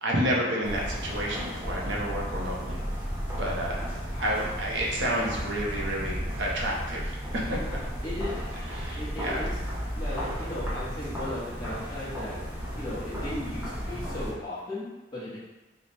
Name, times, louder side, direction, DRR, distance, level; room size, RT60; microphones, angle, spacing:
voice 1, 0.0-2.8 3.4-3.9 4.2-7.6 8.7-9.4, equal, 80° right, -3 dB, 0.8 m, -30 dB
sound 1, 0.6-14.3, equal, 10° right, 0.7 m, -34 dB
voice 2, 8.0-8.4 8.9-9.6 9.9-12.4 12.8-15.4, left 1 dB, 20° left, -9 dB, 1.0 m, -36 dB
3.2 x 2.2 x 4.2 m, 1.1 s
head